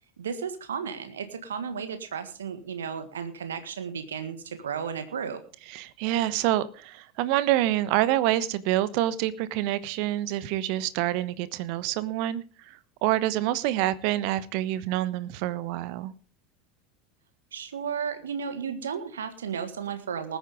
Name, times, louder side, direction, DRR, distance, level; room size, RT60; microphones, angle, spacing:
voice 1, 0.2-5.4 17.5-20.4, right 7 dB, 75° right, 1.6 m, -34 dB
voice 2, 5.7-16.1, right 14 dB, 55° right, 1.1 m, -27 dB
20.0 x 9.1 x 3.6 m
figure-of-eight pair, 75°, 0 cm